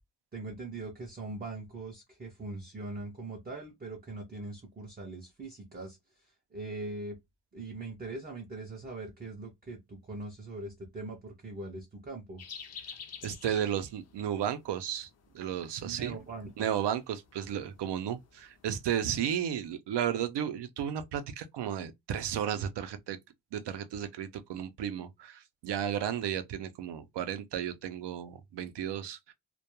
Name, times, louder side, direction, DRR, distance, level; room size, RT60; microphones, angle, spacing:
voice 1, 0.3-6.0 6.5-7.2 7.5-12.4 15.8-16.7, right 2 dB, 25° right, 0.4 m, -41 dB
sound 1, 12.4-19.7, left 6 dB, 40° left, 0.4 m, -51 dB
voice 2, 13.2-15.1 15.3-16.2 16.6-23.2 23.5-29.3, right 9 dB, 80° right, 0.5 m, -33 dB
2.2 x 2.2 x 2.8 m
wide cardioid pair, 175°, 41 cm